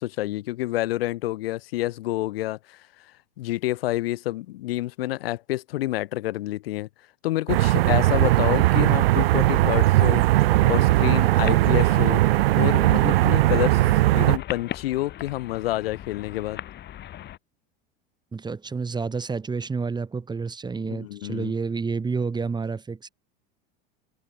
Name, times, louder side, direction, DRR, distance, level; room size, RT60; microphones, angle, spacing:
voice 1, 0.0-2.8 3.4-6.9 7.2-10.2 10.6-12.2 12.6-13.8 14.1-16.6 20.8-21.5, left 16 dB, 85° left, 1.7 m, -28 dB
sound 1, 7.5-14.4, right 17 dB, 85° right, 1.4 m, -19 dB
sound 2, 10.5-17.4, left 12 dB, 35° left, 3.0 m, -40 dB
voice 2, 18.3-23.1, right 4 dB, 15° right, 2.3 m, -29 dB
supercardioid pair, 125°, 29 cm